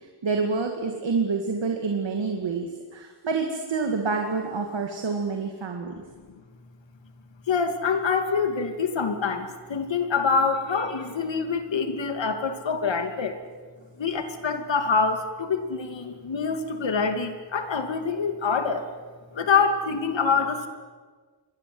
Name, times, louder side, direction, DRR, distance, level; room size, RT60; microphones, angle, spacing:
voice 1, 0.2-5.9, right 4 dB, 80° right, 3 dB, 2.5 m, -27 dB
voice 2, 7.5-13.4 14.0-18.9 19.3-20.7, left 5 dB, 80° left, 7 dB, 2.7 m, -25 dB
28.0 x 22.5 x 8.0 m, 1.5 s
wide cardioid pair, 175°, 44 cm